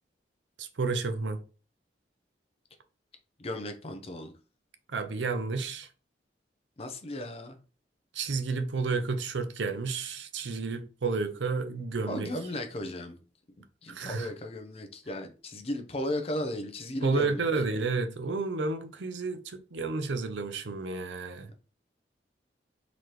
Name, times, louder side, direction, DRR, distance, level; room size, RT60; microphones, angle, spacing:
voice 1, 0.6-1.4 4.9-5.9 8.1-12.3 13.9-14.3 17.0-21.5, right 4 dB, 90° right, 0.6 m, -31 dB
voice 2, 3.4-4.3 6.8-7.6 12.1-13.2 13.8-17.4, left 1 dB, 35° left, 0.5 m, -35 dB
4.0 x 2.9 x 3.2 m
head